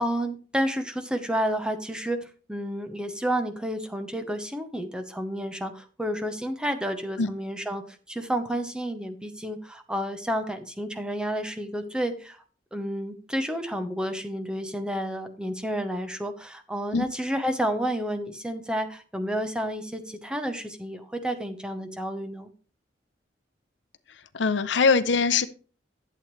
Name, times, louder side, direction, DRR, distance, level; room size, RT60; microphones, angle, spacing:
voice 1, 0.0-7.8 8.1-12.4 12.7-22.5, equal, 5° right, 6 dB, 0.9 m, -30 dB
voice 2, 24.3-25.5, left 4 dB, 75° left, 13 dB, 0.6 m, -22 dB
11.5 x 7.9 x 3.2 m, 0.39 s
head